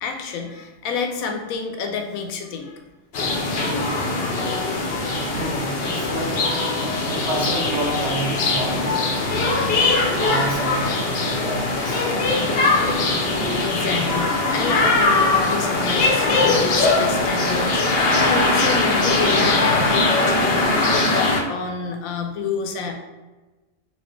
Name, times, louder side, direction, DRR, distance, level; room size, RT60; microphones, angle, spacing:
voice 1, 0.0-2.9 13.6-22.9, left 5 dB, 75° left, 4 dB, 1.0 m, -29 dB
sound 1, 3.1-21.4, left 3 dB, 55° left, 0.7 m, -21 dB
voice 2, 5.0-6.8 7.1-8.8 10.1-12.1, right 2 dB, 55° right, -2 dB, 1.0 m, -29 dB
4.3 x 2.5 x 3.1 m, 1.2 s
omnidirectional pair, 1.5 m